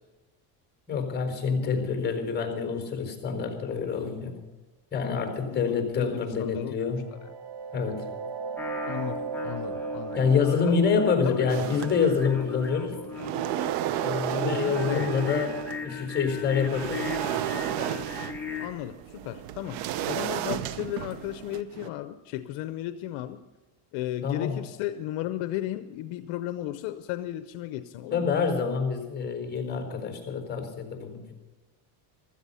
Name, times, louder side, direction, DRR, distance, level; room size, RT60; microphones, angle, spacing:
voice 1, 0.9-4.4 4.9-7.1 7.7-8.0 10.1-13.0 14.0-15.6 15.8-17.1 24.2-24.6 28.1-31.3, left 6 dB, 20° left, 4 dB, 4.3 m, -27 dB
voice 2, 5.5-6.8 8.9-10.2 10.6-10.8 11.3-11.4 14.4-15.1 18.6-23.4 23.9-28.3, left 13 dB, 70° left, 10 dB, 0.8 m, -35 dB
sound 1, 6.8-16.3, right 5 dB, 55° right, 1.6 m, -38 dB
Singing, 8.6-18.7, left 6 dB, 5° left, 2.1 m, -38 dB
sound 2, 11.5-12.5 12.9-15.8 16.3-21.9, right 12 dB, 80° right, 0.9 m, -32 dB
16.0 x 13.5 x 5.6 m, 1.2 s
cardioid pair, 135°, 49 cm